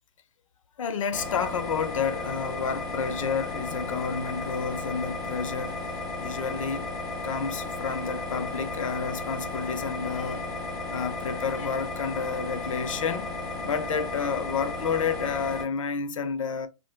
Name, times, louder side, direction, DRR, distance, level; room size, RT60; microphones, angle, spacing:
voice 1, 0.8-5.8 6.2-6.9 7.2-10.5 10.9-13.3 13.6-16.7, left 6 dB, 80° left, 0.6 m, -30 dB
sound 1, 1.1-15.7, left 2 dB, ahead, 0.8 m, -34 dB
3.2 x 2.5 x 2.4 m
hypercardioid pair, 135°, 16 cm